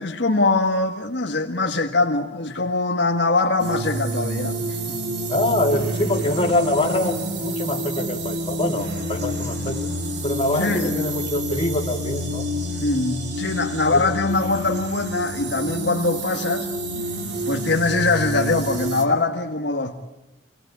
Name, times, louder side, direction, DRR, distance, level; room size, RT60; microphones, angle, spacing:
voice 1, 0.0-5.0 10.6-10.9 12.7-16.7 17.5-20.0, left 3 dB, 65° left, 1.6 m, -22 dB
sound 1, 3.6-19.1, right 1 dB, 60° right, 2.8 m, -28 dB
voice 2, 5.3-9.9 10.2-12.5 13.9-14.0, left 1 dB, 30° left, 2.8 m, -24 dB
25.0 x 18.5 x 10.0 m
head